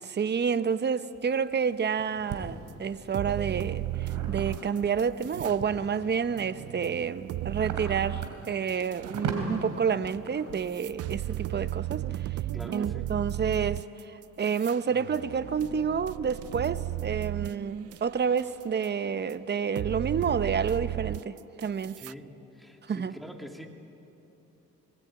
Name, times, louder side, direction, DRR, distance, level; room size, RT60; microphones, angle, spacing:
voice 1, 0.0-12.0 12.7-13.8 14.4-22.0 22.9-23.1, right 6 dB, 35° right, 0.8 m, -29 dB
sound 1, 1.2-2.4 3.1-5.9 6.5-11.5, right 6 dB, 85° right, 3.2 m, -38 dB
sound 2, 2.7-2.8 3.1-5.6 5.9-9.2 10.1-10.2 10.5-18.0 18.3-18.9 19.3-19.4 19.8-22.1, right 15 dB, 55° right, 0.4 m, -35 dB
voice 2, 12.5-13.1 22.0-23.7, equal, ahead, 2.3 m, -44 dB
21.5 x 19.0 x 8.8 m
cardioid pair, 90°, 30 cm